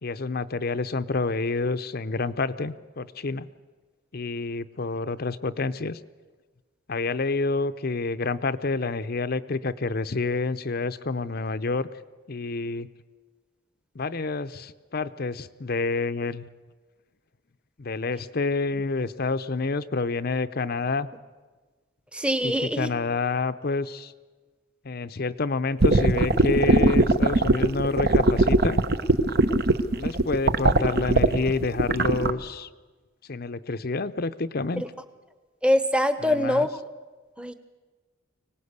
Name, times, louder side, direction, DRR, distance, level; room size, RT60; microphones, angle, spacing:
voice 1, 0.0-3.5 4.1-6.0 6.9-11.9 12.3-12.9 13.9-16.5 17.8-21.1 22.4-24.1 24.8-28.8 30.0-32.7 33.3-34.8 36.2-36.7, left 3 dB, 50° left, 12 dB, 0.7 m, -28 dB
voice 2, 22.1-22.9 34.8-34.9 35.6-36.7 37.4-37.5, equal, 5° right, 11 dB, 0.9 m, -23 dB
sound 1, 25.8-32.3, right 2 dB, 50° right, 0.9 m, -20 dB
25.0 x 18.5 x 8.2 m, 1.3 s
head